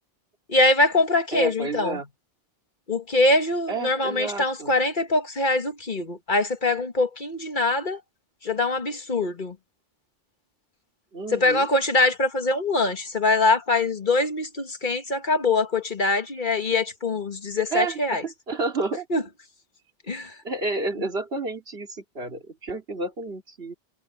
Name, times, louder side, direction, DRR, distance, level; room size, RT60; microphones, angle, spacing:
voice 1, 0.5-2.0 2.9-8.0 8.4-9.5 11.3-18.2 19.1-19.2 20.1-20.3, left 2 dB, 50° left, 1.7 m, -23 dB
voice 2, 1.3-2.1 3.7-4.7 11.1-11.7 17.7-19.1 20.4-23.7, right 3 dB, 75° right, 3.2 m, -30 dB
omnidirectional pair, 1.0 m